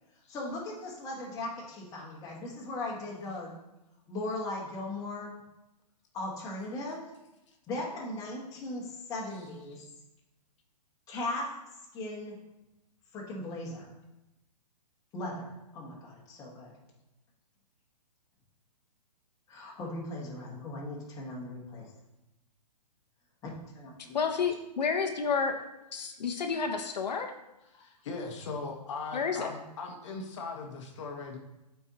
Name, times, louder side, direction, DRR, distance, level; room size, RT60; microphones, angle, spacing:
voice 1, 0.3-3.5 4.1-5.3 6.1-7.1 7.7-9.8 11.1-11.6 11.9-12.3 13.1-13.9 15.1-16.8 19.5-21.9 23.7-24.2 27.7-27.8, left 2 dB, 15° left, -4 dB, 1.5 m, -38 dB
voice 2, 24.1-25.5 25.9-27.3 29.1-29.5, left 5 dB, 80° left, 4 dB, 1.0 m, -30 dB
voice 3, 27.7-31.4, left 3 dB, 45° left, 2 dB, 1.1 m, -39 dB
12.0 x 4.6 x 2.9 m, 0.94 s
hypercardioid pair, 155°, 21 cm